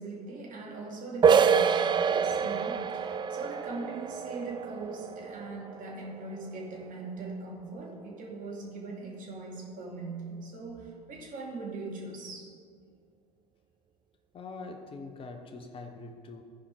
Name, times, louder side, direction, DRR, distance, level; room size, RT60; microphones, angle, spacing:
voice 1, 0.0-12.5, right 3 dB, 45° right, -2 dB, 2.5 m, -40 dB
sound 1, 1.2-6.7, right 6 dB, 25° right, 0.4 m, -27 dB
voice 2, 14.3-16.4, left 3 dB, 30° left, 5 dB, 0.9 m, -43 dB
14.0 x 5.0 x 4.9 m, 2.1 s
hypercardioid pair, 75°, 19 cm